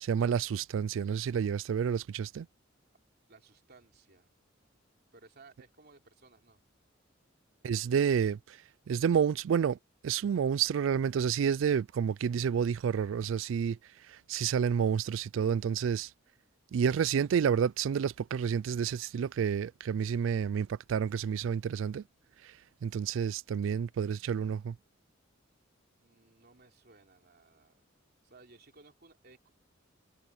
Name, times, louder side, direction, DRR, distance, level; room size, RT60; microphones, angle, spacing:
voice 1, 0.0-2.5 7.6-9.8 10.0-16.1 16.7-22.0 22.4-24.8, right 7 dB, 75° right, 0.3 m, -30 dB
voice 2, 3.3-4.3 5.1-6.6 26.0-27.8 28.2-29.5, right 3 dB, 55° right, 3.4 m, -59 dB
head